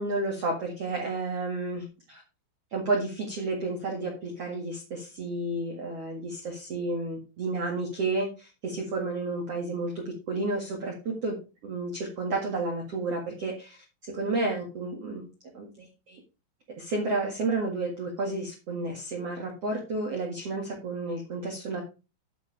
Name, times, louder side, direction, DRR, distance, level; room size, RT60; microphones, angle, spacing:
voice 1, 0.0-2.2 2.7-9.9 10.3-10.9 11.2-11.3 11.6-13.8 14.0-15.3 15.5-16.2 16.8-21.8, right 2 dB, 65° right, 0 dB, 1.5 m, -31 dB
11.5 x 4.9 x 4.8 m, 0.31 s
omnidirectional pair, 5.8 m